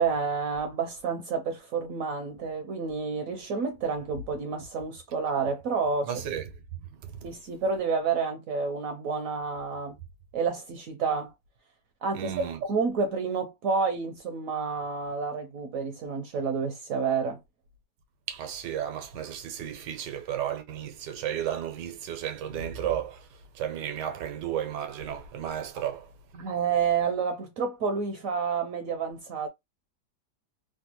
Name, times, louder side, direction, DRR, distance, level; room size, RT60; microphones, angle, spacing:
voice 1, 0.0-6.1 7.2-10.0 10.3-11.3 12.0-17.4 26.3-29.5, right 5 dB, 70° right, 0.8 m, -29 dB
voice 2, 6.0-6.5 6.9-7.1 12.1-12.6 18.3-26.1, right 10 dB, 90° right, 1.3 m, -33 dB
3.3 x 2.2 x 2.8 m
omnidirectional pair, 1.8 m